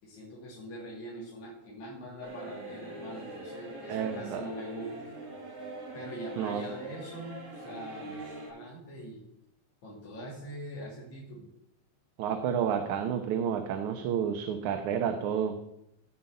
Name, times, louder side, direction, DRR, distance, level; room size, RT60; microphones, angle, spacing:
voice 1, 0.0-4.9 5.9-9.2 9.8-11.5, equal, 75° left, -6 dB, 4.2 m, -43 dB
sound 1, 2.2-8.5, right 1 dB, 70° right, 6.0 m, -43 dB
voice 2, 3.9-4.4 6.4-6.7 12.2-15.5, right 8 dB, 85° right, 5 dB, 2.4 m, -30 dB
16.5 x 5.7 x 7.8 m, 0.82 s
omnidirectional pair, 3.3 m